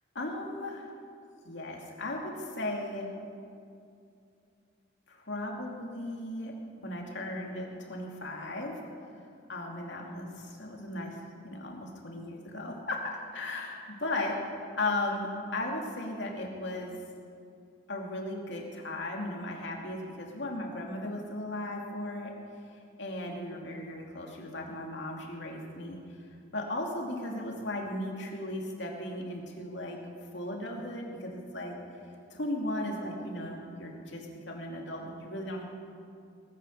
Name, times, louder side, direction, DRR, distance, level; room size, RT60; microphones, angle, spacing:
voice 1, 0.1-0.9 1.4-3.1 5.1-8.8 9.5-11.2 11.4-14.4 14.8-16.9 17.9-22.3 23.0-26.0 26.5-30.0 30.3-31.8 32.3-35.6, left 1 dB, 65° left, 0 dB, 2.5 m, -36 dB
19.5 x 9.6 x 6.5 m, 2.4 s
head